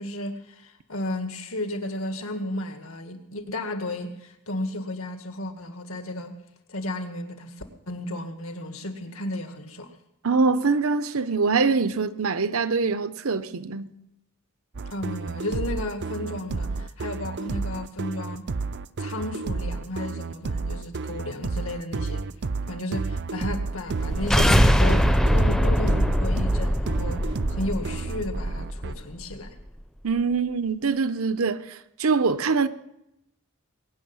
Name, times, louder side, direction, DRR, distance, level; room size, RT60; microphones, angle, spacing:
voice 1, 0.0-6.4 6.7-7.5 7.9-9.9 14.9-18.5 19.0-22.3 22.7-29.6, left 1 dB, 70° left, 1.9 m, -33 dB
voice 2, 10.2-13.9 30.0-32.7, right 4 dB, 75° right, 0.9 m, -24 dB
sound 1, 14.7-28.9, right 4 dB, 50° right, 0.5 m, -31 dB
sound 2, 23.9-29.0, equal, ahead, 0.7 m, -22 dB
21.0 x 7.0 x 9.6 m
head